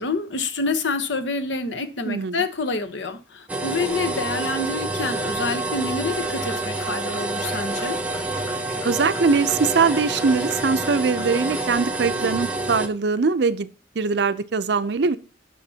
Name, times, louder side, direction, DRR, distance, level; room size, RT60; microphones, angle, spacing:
voice 1, 0.0-8.0, left 3 dB, 70° left, 0.9 m, -27 dB
voice 2, 2.1-2.4 8.8-13.7 14.0-15.2, right 4 dB, 60° right, 0.5 m, -22 dB
sound 1, 3.5-12.9, right 2 dB, 5° right, 0.7 m, -28 dB
sound 2, 5.9-12.4, left 4 dB, 35° left, 5.5 m, -43 dB
16.0 x 5.9 x 2.8 m
head